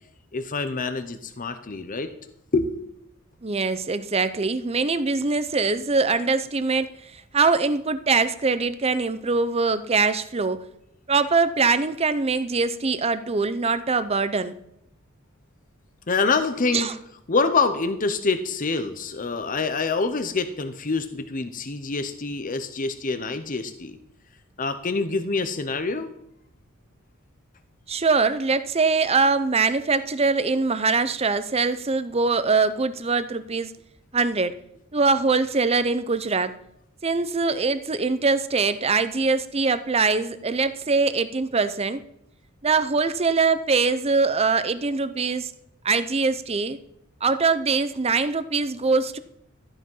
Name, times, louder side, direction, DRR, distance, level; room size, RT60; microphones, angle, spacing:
voice 1, 0.3-3.0 16.1-17.0 17.3-24.0 24.6-26.1, left 4 dB, 40° left, 9 dB, 0.8 m, -26 dB
voice 2, 3.4-10.6 11.1-14.5 16.7-16.9 27.9-33.7 34.1-34.5 34.9-36.5 37.0-42.0 42.6-45.5 45.8-46.8 47.2-49.2, right 4 dB, 30° right, 13 dB, 0.7 m, -23 dB
13.5 x 10.0 x 5.5 m, 0.77 s
head